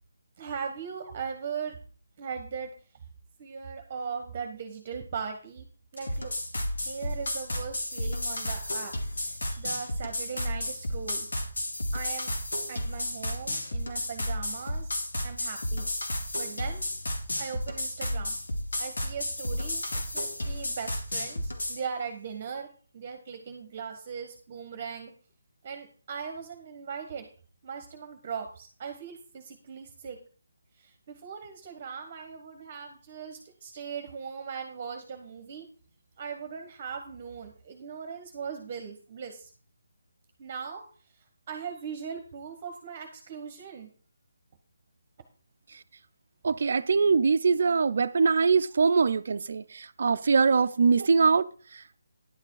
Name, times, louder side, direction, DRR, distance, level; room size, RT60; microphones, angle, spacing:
voice 1, 0.4-1.8 2.2-2.7 3.4-5.7 5.9-6.3 6.8-11.3 11.9-12.3 12.7-14.9 15.2-15.9 16.4-16.8 17.4-18.4 18.8-22.7 22.9-25.1 25.6-27.3 27.6-30.2 30.8-35.7 36.2-39.5 40.4-40.8 41.5-43.9, right 6 dB, 30° right, 1.1 m, -39 dB
sound 1, 6.0-21.8, left 1 dB, 80° left, 2.4 m, -32 dB
voice 2, 46.4-52.0, right 5 dB, 50° right, 0.5 m, -23 dB
10.5 x 6.7 x 4.7 m
hypercardioid pair, 165°, 0 cm